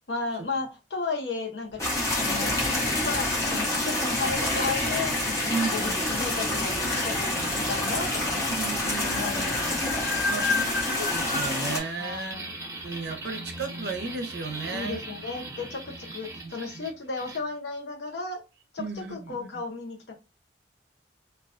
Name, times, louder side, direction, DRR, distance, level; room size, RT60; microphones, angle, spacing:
voice 1, 0.1-1.8 2.1-2.6 2.9-6.7 7.0-8.5 9.1-10.1 10.5-10.8 12.0-12.5 14.7-18.4 18.7-20.1, left 4 dB, 80° left, 0.7 m, -34 dB
sound 1, 1.7-11.5, left 3 dB, 60° left, 1.0 m, -34 dB
sound 2, 1.8-11.8, left 1 dB, 20° left, 0.8 m, -28 dB
voice 2, 5.5-6.1 8.5-9.5 10.3-10.5 11.0-12.4 12.8-15.0 16.4-16.9 18.8-19.6, right 4 dB, 70° right, 0.5 m, -34 dB
sound 3, 11.2-17.4, right 2 dB, 15° right, 0.6 m, -39 dB
2.3 x 2.2 x 2.4 m
head